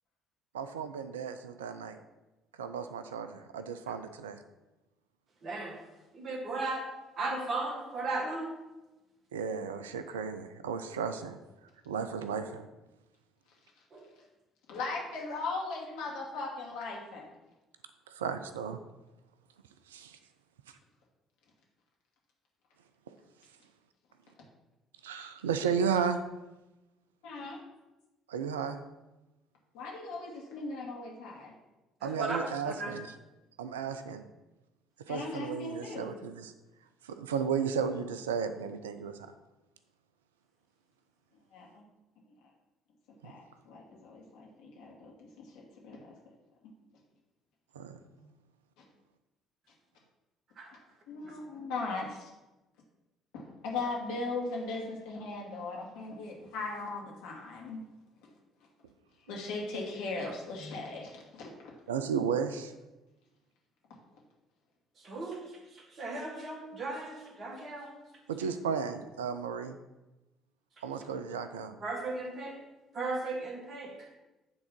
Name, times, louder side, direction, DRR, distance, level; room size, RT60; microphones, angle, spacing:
voice 1, 0.5-2.0 2.6-4.4 9.3-11.4 11.9-12.7 18.1-18.8 19.9-20.2 25.0-26.2 28.3-28.8 32.0-33.1 33.6-34.3 35.1-36.5 37.0-39.2 43.2-43.3 47.8-48.0 61.9-62.7 68.3-69.8 70.8-71.8, right 6 dB, 75° right, 10 dB, 0.4 m, -34 dB
voice 2, 5.4-5.8 6.1-6.9 7.2-8.5 13.9-14.1 32.0-32.4 32.6-32.9 50.6-50.8 51.3-51.4 60.6-60.7 65.0-68.0 71.8-72.6 72.9-74.1, right 2 dB, 40° right, 1 dB, 2.0 m, -36 dB
voice 3, 14.7-17.3 27.2-27.6 29.7-31.5 35.1-36.1 41.5-41.8 43.2-46.2 48.1-48.3 51.1-52.3 53.3-57.8 59.3-61.5, left 3 dB, 65° left, -2 dB, 2.2 m, -38 dB
9.6 x 3.8 x 5.9 m, 1.0 s
figure-of-eight pair, 50°, 0 cm